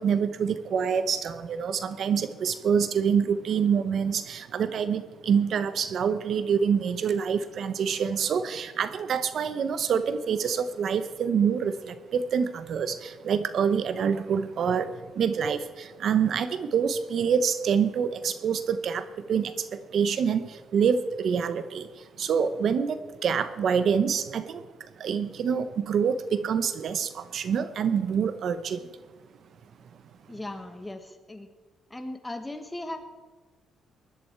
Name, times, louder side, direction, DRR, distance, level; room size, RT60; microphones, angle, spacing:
voice 1, 0.0-28.9, right 7 dB, 60° right, 12 dB, 0.9 m, -26 dB
voice 2, 30.3-31.5 31.9-33.0, left 1 dB, 15° left, 8 dB, 1.7 m, -37 dB
20.0 x 11.5 x 4.6 m, 1.3 s
cardioid pair, 90°, 0 cm